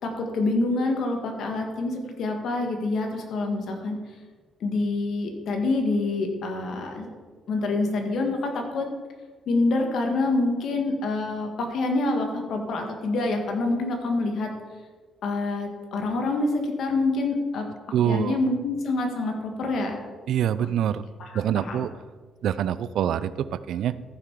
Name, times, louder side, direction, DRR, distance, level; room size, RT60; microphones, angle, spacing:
voice 1, 0.0-4.0 4.6-7.1 7.5-8.9 9.5-14.5 15.2-17.7 18.1-20.0 20.6-20.7 21.2-21.9, left 2 dB, 70° left, 3 dB, 1.9 m, -26 dB
voice 2, 17.9-18.4 20.3-21.1 21.3-21.9 22.4-24.0, right 10 dB, 75° right, 15 dB, 0.4 m, -25 dB
14.0 x 5.8 x 4.9 m, 1.4 s
cardioid pair, 90°, 0 cm